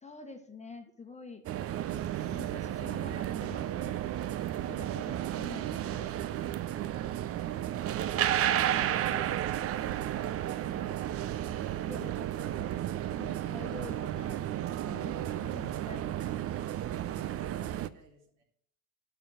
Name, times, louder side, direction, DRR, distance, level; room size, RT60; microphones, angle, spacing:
voice 1, 0.0-1.5 2.3-4.0 4.4-6.1 8.2-9.5 10.5-10.9 11.9-12.6 13.2-14.4 14.9-16.4 17.6-17.7, left 4 dB, 15° left, 5 dB, 1.4 m, -48 dB
sound 1, 1.5-17.9, right 12 dB, 30° right, 0.6 m, -33 dB
voice 2, 17.1-18.4, right 2 dB, 55° right, 1 dB, 4.0 m, -62 dB
12.0 x 5.7 x 8.7 m, 0.65 s
figure-of-eight pair, 75°, 48 cm